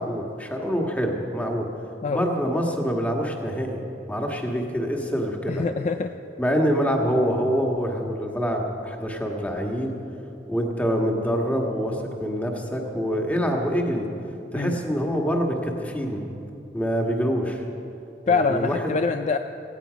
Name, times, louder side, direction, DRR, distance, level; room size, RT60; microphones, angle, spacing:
voice 1, 0.0-1.7 2.1-3.8 4.1-5.7 6.4-10.0 10.5-14.1 14.5-16.2 16.7-17.6 18.2-18.8, equal, 10° left, 1 dB, 1.6 m, -25 dB
voice 2, 5.5-6.1 14.6-14.8 18.3-19.4, left 4 dB, 40° left, 7 dB, 0.4 m, -24 dB
18.0 x 15.5 x 5.2 m, 2.8 s
head